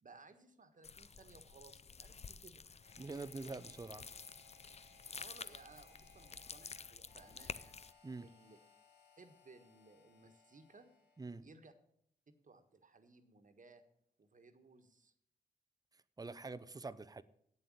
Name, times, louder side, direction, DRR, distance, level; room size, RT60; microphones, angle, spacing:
voice 1, 0.0-2.6 5.2-7.8 8.2-8.6 9.2-10.9 11.4-11.7 12.3-13.8 14.2-15.1, right 3 dB, 45° right, 1.5 m, -61 dB
sound 1, 0.8-7.9, left 5 dB, 35° left, 0.5 m, -51 dB
Harmonica, 2.8-11.4, left 3 dB, 80° left, 3.7 m, -66 dB
voice 2, 3.0-4.0 8.0-8.3 11.2-11.4 16.2-17.2, right 3 dB, 20° right, 0.7 m, -45 dB
8.5 x 7.6 x 8.7 m
cardioid pair, 55°, 18 cm